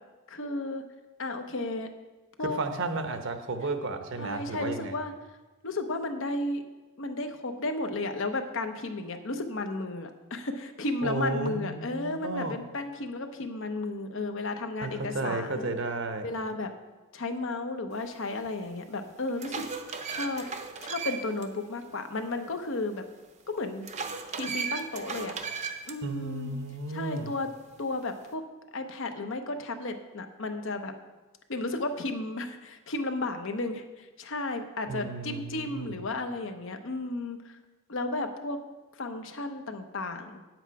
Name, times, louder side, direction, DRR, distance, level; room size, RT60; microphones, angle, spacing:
voice 1, 0.3-0.8 1.2-1.9 2.4-2.6 4.2-5.1 5.6-6.6 7.0-15.7 16.2-16.7 17.1-19.6 20.1-20.4 20.8-23.1 23.5-23.9 24.3-25.4 25.9-26.6 26.9-27.5 27.8-28.4 28.7-30.9 31.5-37.6 37.9-38.6 39.0-40.4, left 2 dB, 60° left, 7 dB, 0.8 m, -33 dB
voice 2, 2.4-4.9 11.0-12.6 14.8-16.3 26.0-27.3 34.9-36.0, right 2 dB, 60° right, 7 dB, 0.9 m, -33 dB
sound 1, 18.4-18.5 19.1-21.4 21.8-21.9 23.8-25.9, right 5 dB, 35° right, 0.7 m, -36 dB
9.2 x 8.0 x 4.7 m, 1.2 s
head